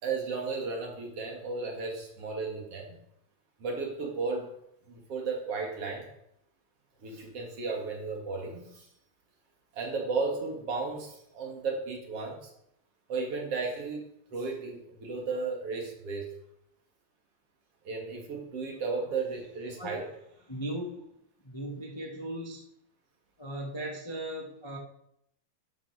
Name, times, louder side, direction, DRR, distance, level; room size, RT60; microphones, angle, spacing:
voice 1, 0.0-3.0 3.6-4.5 4.9-6.1 7.0-8.9 9.7-12.5 13.1-14.0 14.3-16.3 17.8-20.0, right 4 dB, 45° right, 1 dB, 3.0 m, -34 dB
voice 2, 20.5-20.9 21.4-22.6 23.4-24.8, right 1 dB, 25° left, 0 dB, 0.5 m, -37 dB
13.0 x 9.6 x 4.9 m, 0.75 s
omnidirectional pair, 3.8 m